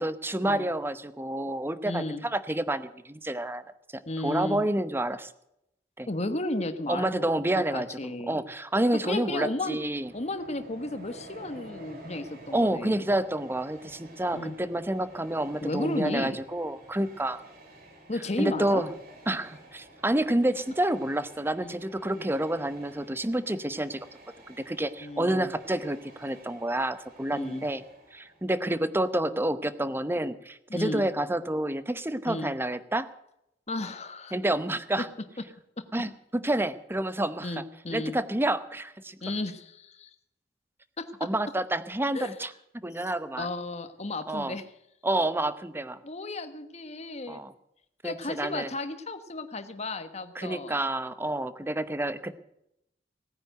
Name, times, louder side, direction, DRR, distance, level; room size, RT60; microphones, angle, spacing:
voice 1, 0.0-3.6 4.2-5.3 6.0-6.1 6.9-8.0 8.3-10.1 12.5-17.4 18.4-18.9 19.3-24.0 24.5-27.8 28.1-33.1 34.3-35.1 35.9-37.6 37.9-39.2 41.2-42.5 42.8-43.5 44.3-44.6 45.0-46.0 47.3-47.5 48.0-48.7 50.3-52.4, right 1 dB, 15° right, 14 dB, 0.8 m, -29 dB
voice 2, 1.8-2.2 4.1-4.6 6.1-7.3 7.5-8.4 9.0-9.8 10.1-13.1 14.3-14.6 15.6-16.4 18.1-18.9 21.6-21.7 22.2-22.3 25.0-25.5 27.3-27.7 30.7-31.0 32.3-32.5 33.7-34.4 35.8-35.9 37.4-38.2 39.2-40.1 41.0-41.1 42.1-42.4 43.4-44.6 46.0-47.4 48.0-50.8, left 2 dB, 40° left, 10 dB, 1.4 m, -34 dB
Train, 9.7-28.6, right 1 dB, 60° right, 4.6 m, -51 dB
18.0 x 9.6 x 7.9 m, 0.80 s
head